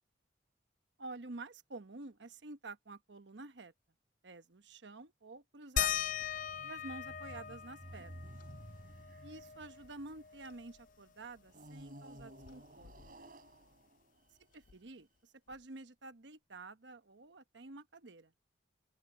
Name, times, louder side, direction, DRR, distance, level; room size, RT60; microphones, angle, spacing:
voice 1, 1.0-3.7 4.2-6.0 6.6-8.3 9.2-12.9 14.5-18.3, right 3 dB, 70° right, 1.0 m, -50 dB
sound 1, 5.8-10.9 11.2-11.3 11.7-13.4 14.7-14.8 15.5-15.6, left 9 dB, 45° left, 0.4 m, -40 dB
sound 2, 6.0-10.7 11.5-14.9, equal, 50° right, 5.7 m, -54 dB
open air
head